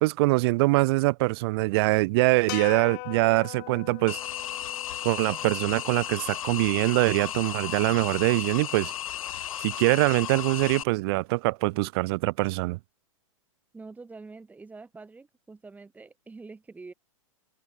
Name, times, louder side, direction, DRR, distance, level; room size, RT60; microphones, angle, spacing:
voice 1, 0.0-4.2 5.0-8.9 9.6-12.8, right 23 dB, 45° right, 0.6 m, -24 dB
sound 1, 2.5-6.8, left 36 dB, 40° left, 0.7 m, -41 dB
sound 2, 4.1-10.8, left 11 dB, 80° left, 0.5 m, -35 dB
voice 2, 13.7-16.9, right 3 dB, 10° right, 1.9 m, -45 dB
hypercardioid pair, 125°, 17 cm